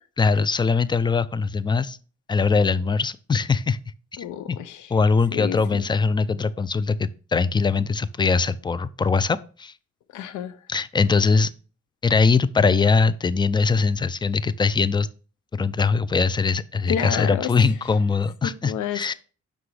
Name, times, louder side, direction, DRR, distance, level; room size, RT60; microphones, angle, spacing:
voice 1, 0.2-2.0 2.3-3.8 4.2-4.6 4.9-9.7 10.7-11.5 12.0-15.1 15.5-19.1, left 4 dB, 15° left, 0.3 m, -21 dB
voice 2, 4.2-4.9 5.3-5.8 10.1-10.6 16.9-17.5 18.4-19.1, left 9 dB, 90° left, 0.5 m, -30 dB
5.9 x 5.0 x 3.2 m
cardioid pair, 75°, 29 cm